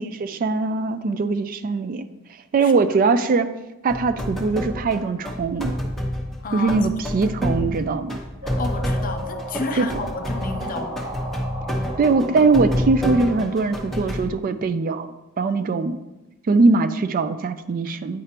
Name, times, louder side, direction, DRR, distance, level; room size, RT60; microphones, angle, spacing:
voice 1, 0.0-2.1 2.5-3.5 3.8-5.7 6.5-8.2 9.7-10.0 12.0-15.1 15.4-16.0 16.5-18.2, right 4 dB, 40° right, 11 dB, 0.3 m, -21 dB
sound 1, 3.9-14.3, equal, ahead, 0.9 m, -28 dB
voice 2, 6.4-6.8 8.6-11.1, left 3 dB, 40° left, 6 dB, 0.6 m, -31 dB
sound 2, 8.4-14.1, right 1 dB, 90° right, 2.4 m, -36 dB
9.2 x 4.9 x 2.9 m, 1.0 s
head